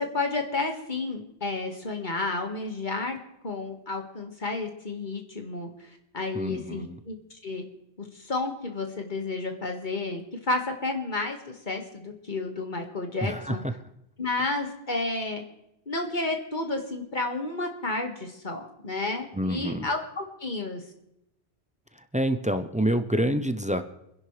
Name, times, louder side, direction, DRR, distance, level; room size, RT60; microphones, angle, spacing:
voice 1, 0.0-3.2 3.4-7.2 7.4-7.6 8.0-13.6 14.2-15.4 15.9-20.8, left 3 dB, 45° left, 3 dB, 1.9 m, -31 dB
voice 2, 6.3-7.0 13.2-13.6 19.3-19.9 22.1-23.8, equal, 10° right, 9 dB, 0.4 m, -27 dB
28.5 x 11.0 x 3.3 m, 0.85 s
omnidirectional pair, 1.2 m